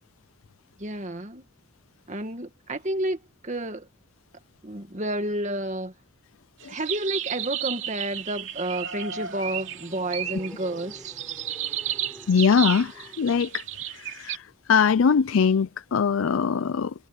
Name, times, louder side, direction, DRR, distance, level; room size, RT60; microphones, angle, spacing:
voice 1, 0.8-1.4 2.1-3.9 4.6-5.9 6.7-11.1, right 1 dB, 35° right, 2.0 m, -30 dB
sound 1, 6.6-14.4, right 10 dB, 65° right, 2.8 m, -33 dB
sound 2, 8.8-13.5, equal, ahead, 4.2 m, -49 dB
voice 2, 12.3-13.6 13.9-16.9, left 6 dB, 75° left, 0.4 m, -22 dB
head